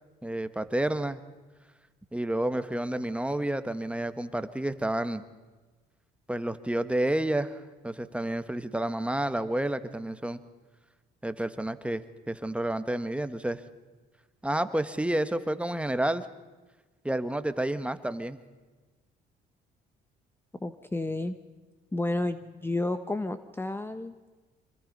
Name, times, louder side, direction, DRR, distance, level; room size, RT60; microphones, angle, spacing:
voice 1, 0.2-1.2 2.1-5.2 6.3-10.4 11.2-13.6 14.4-16.3 17.0-18.4, right 1 dB, 5° right, 11 dB, 1.3 m, -30 dB
voice 2, 20.6-21.4 21.9-24.1, left 2 dB, 15° left, 11 dB, 1.0 m, -31 dB
25.5 x 23.0 x 5.4 m, 1.3 s
supercardioid pair, 85°, 17 cm